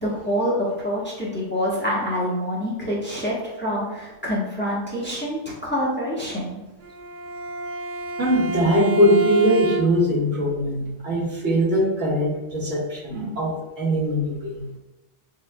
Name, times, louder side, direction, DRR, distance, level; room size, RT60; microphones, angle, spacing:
voice 1, 0.0-6.6, equal, 10° left, -6 dB, 1.1 m, -26 dB
Bowed string instrument, 6.8-10.2, right 1 dB, 60° right, 0.5 m, -29 dB
voice 2, 8.2-14.6, equal, 85° right, -6 dB, 1.9 m, -21 dB
6.9 x 3.2 x 2.2 m, 1.0 s
omnidirectional pair, 1.3 m